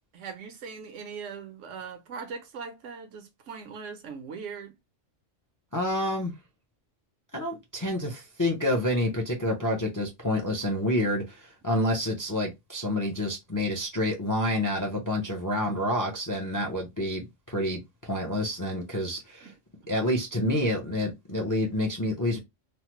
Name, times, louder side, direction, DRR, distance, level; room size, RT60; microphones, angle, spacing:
voice 1, 0.1-4.7 19.4-19.5, right 5 dB, 80° right, 1.0 m, -40 dB
voice 2, 5.7-6.3 7.3-19.5 19.9-22.4, left 1 dB, 25° left, 0.4 m, -28 dB
3.1 x 2.1 x 2.9 m
omnidirectional pair, 1.3 m